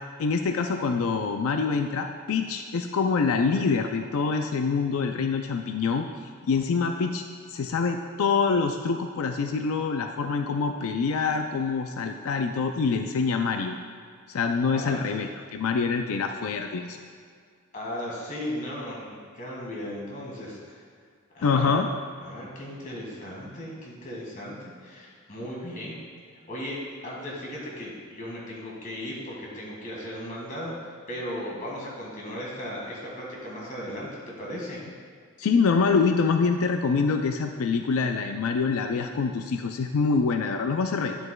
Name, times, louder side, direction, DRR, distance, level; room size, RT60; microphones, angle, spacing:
voice 1, 0.2-6.1 6.5-7.2 7.5-13.8 14.3-17.0 21.4-21.9 35.4-41.2, left 5 dB, 75° left, 6 dB, 0.4 m, -25 dB
voice 2, 14.7-15.0 17.7-20.8 21.3-21.8 22.2-26.0 26.5-34.1 34.4-34.8, equal, 40° left, -4 dB, 1.8 m, -36 dB
9.5 x 7.9 x 2.3 m, 2.1 s
head